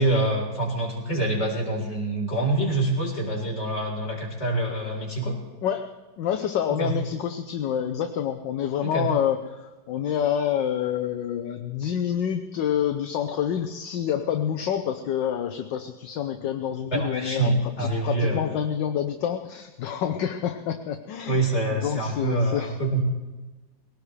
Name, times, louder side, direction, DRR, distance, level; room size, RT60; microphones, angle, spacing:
voice 1, 0.0-5.4 6.8-6.9 8.8-9.1 16.9-18.4 21.3-23.0, right 2 dB, 35° left, -3 dB, 4.3 m, -25 dB
voice 2, 5.6-17.5 17.8-22.8, left 9 dB, 70° left, 6 dB, 1.4 m, -28 dB
20.5 x 18.0 x 3.3 m, 1.2 s
omnidirectional pair, 2.1 m